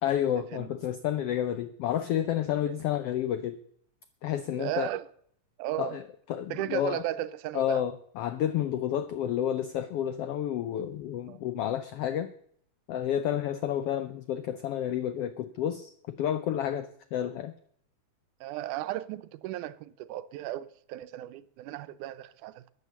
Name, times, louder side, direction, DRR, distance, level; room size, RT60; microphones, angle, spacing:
voice 1, 0.0-3.6 4.2-4.9 5.8-6.0 6.3-7.0 7.5-12.3 12.9-17.5, left 10 dB, 85° left, 1.3 m, -30 dB
voice 2, 4.6-5.1 5.6-6.0 6.5-7.8 11.3-11.4 18.4-22.7, right 14 dB, 85° right, 2.2 m, -35 dB
13.5 x 9.7 x 6.8 m
omnidirectional pair, 3.5 m